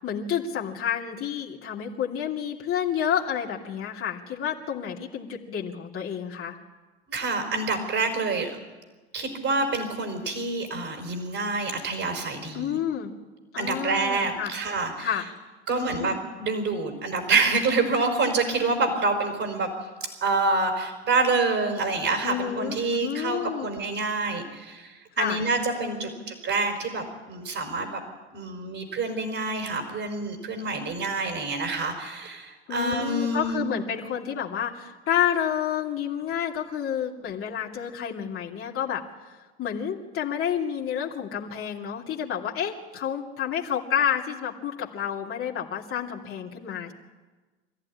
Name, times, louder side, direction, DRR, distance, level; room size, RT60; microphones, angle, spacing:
voice 1, 0.0-6.5 12.5-13.1 13.5-14.5 15.0-15.2 15.7-16.1 22.2-23.7 25.2-25.4 25.7-26.2 32.7-46.9, left 9 dB, 40° left, -1 dB, 2.7 m, -30 dB
voice 2, 7.1-8.6 9.1-12.8 13.6-15.2 15.7-19.7 20.2-28.0 28.3-33.7, right 3 dB, 40° right, 3 dB, 4.8 m, -27 dB
25.0 x 14.5 x 9.9 m, 1.3 s
hypercardioid pair, 80°, 34 cm